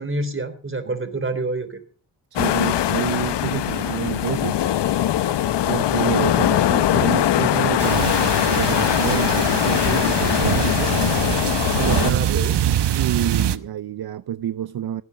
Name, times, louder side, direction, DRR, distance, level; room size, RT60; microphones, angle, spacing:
voice 1, 0.0-1.8 9.2-9.3 12.0-12.6, right 2 dB, 30° right, 3.5 m, -27 dB
voice 2, 2.3-4.6 5.7-8.2 8.5-11.0 11.8-12.5 12.9-15.0, right 10 dB, 60° right, 0.6 m, -28 dB
sound 1, 2.4-12.1, left 11 dB, 85° left, 0.8 m, -21 dB
sound 2, 7.8-13.6, right 10 dB, 80° right, 1.0 m, -24 dB
17.5 x 9.5 x 5.8 m
cardioid pair, 70°, 41 cm